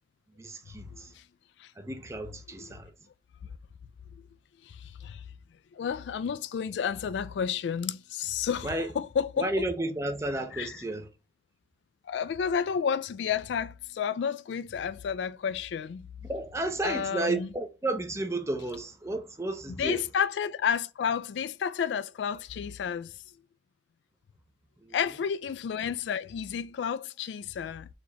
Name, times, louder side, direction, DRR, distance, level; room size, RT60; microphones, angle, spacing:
voice 1, 0.4-1.1 1.8-2.9 8.6-8.9 9.4-11.1 16.2-20.0 24.8-25.0, right 2 dB, 15° right, 0.5 m, -32 dB
voice 2, 4.6-5.2 5.7-9.5 10.5-10.7 12.1-16.1 16.8-17.5 19.7-23.1 24.9-27.9, left 7 dB, 70° left, 0.3 m, -31 dB
4.1 x 2.9 x 3.1 m
head